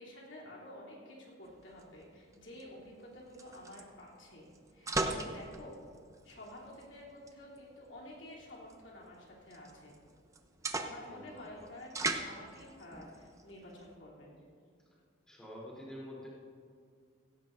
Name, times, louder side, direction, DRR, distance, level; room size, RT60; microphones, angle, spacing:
voice 1, 0.0-5.8 6.2-9.9 10.8-14.4, left 1 dB, 65° left, -4 dB, 3.2 m, -51 dB
sound 1, 1.4-13.9, right 2 dB, 15° right, 0.7 m, -42 dB
voice 2, 11.0-11.3 15.3-16.3, equal, 5° left, -7 dB, 3.4 m, -47 dB
17.0 x 16.5 x 2.6 m, 2.2 s
head